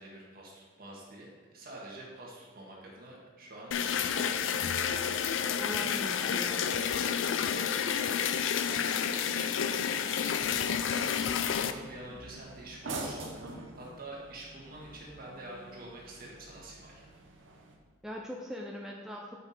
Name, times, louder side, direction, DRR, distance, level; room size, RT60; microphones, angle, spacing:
voice 1, 0.0-6.2 8.8-17.1, right 1 dB, 50° right, -3 dB, 1.6 m, -48 dB
sound 1, 3.7-11.7, left 7 dB, 80° left, 0.4 m, -30 dB
voice 2, 5.6-6.8 18.0-19.4, left 1 dB, ahead, -2 dB, 0.4 m, -40 dB
sound 2, 10.4-17.7, right 2 dB, 75° right, 0.9 m, -46 dB
5.9 x 5.7 x 4.2 m, 1.5 s
head